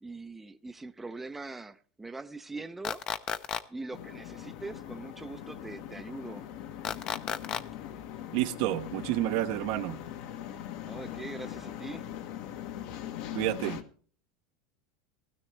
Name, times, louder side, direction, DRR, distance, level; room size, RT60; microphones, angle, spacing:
voice 1, 0.0-3.0 3.7-6.5 10.9-12.0, right 3 dB, 10° right, 0.6 m, -42 dB
sound 1, 2.8-3.6 6.8-7.6, left 9 dB, 35° left, 0.7 m, -32 dB
sound 2, 3.9-13.8, left 11 dB, 65° left, 1.3 m, -41 dB
voice 2, 8.3-10.0 13.3-13.8, right 15 dB, 65° right, 0.8 m, -29 dB
16.0 x 13.0 x 3.3 m
supercardioid pair, 135°, 3 cm